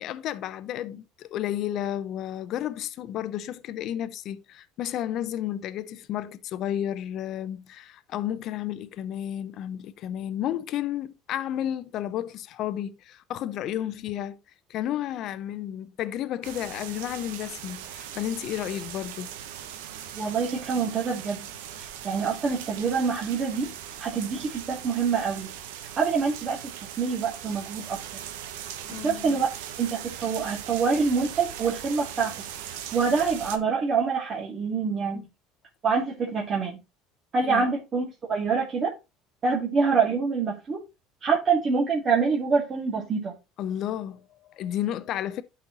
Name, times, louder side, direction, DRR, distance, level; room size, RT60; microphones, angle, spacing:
voice 1, 0.0-14.4 14.7-19.3 28.9-29.4 37.4-37.7 43.6-45.4, left 11 dB, 60° left, 0.7 m, -32 dB
sound 1, 16.4-33.6, right 10 dB, 85° right, 0.9 m, -40 dB
voice 2, 20.2-21.5 21.8-23.7 24.0-25.5 26.0-26.6 27.0-28.0 29.0-29.5 29.8-32.3 32.7-35.3 35.8-36.8 37.3-38.9 39.4-40.8 41.2-43.3, right 5 dB, 40° right, 2.1 m, -26 dB
11.5 x 4.3 x 3.0 m
supercardioid pair, 95°, 0 cm